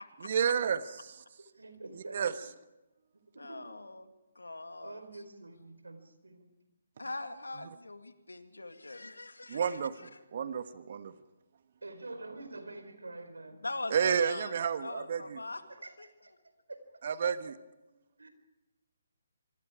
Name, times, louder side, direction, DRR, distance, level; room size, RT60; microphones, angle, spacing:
voice 1, 0.2-0.8 2.1-2.3 9.5-11.1 13.9-15.4 17.0-17.5, right 7 dB, 50° right, 12 dB, 1.3 m, -30 dB
voice 2, 1.4-2.2 3.3-3.6 4.8-6.5 7.0-7.1 11.8-13.6 15.8-16.8 17.8-18.3, right 2 dB, 80° right, 9 dB, 4.4 m, -47 dB
voice 3, 3.4-5.0 7.0-10.1 13.6-15.6 16.0-16.1, left 2 dB, 85° left, 8 dB, 2.2 m, -42 dB
25.5 x 24.5 x 5.0 m, 1.0 s
figure-of-eight pair, 140°, 0 cm